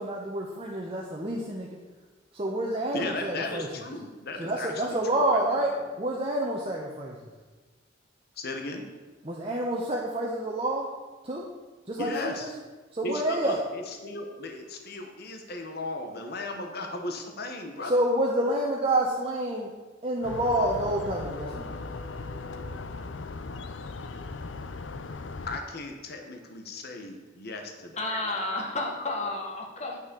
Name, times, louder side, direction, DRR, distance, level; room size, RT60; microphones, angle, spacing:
voice 1, 0.0-1.7 2.3-3.7 4.4-7.2 9.2-10.9 11.2-11.4 11.9-12.5 12.9-13.6 17.8-19.7 20.0-21.7, right 1 dB, 30° right, -2 dB, 1.1 m, -28 dB
voice 2, 2.9-5.4 5.7-5.8 8.4-8.8 12.0-12.5 13.0-18.0 25.5-28.0, left 2 dB, 55° left, 4 dB, 1.3 m, -36 dB
sound 1, 20.2-25.6, left 3 dB, 75° left, 0.6 m, -38 dB
voice 3, 28.0-30.0, left 2 dB, 35° left, 2 dB, 1.7 m, -31 dB
9.5 x 6.3 x 6.8 m, 1.3 s
head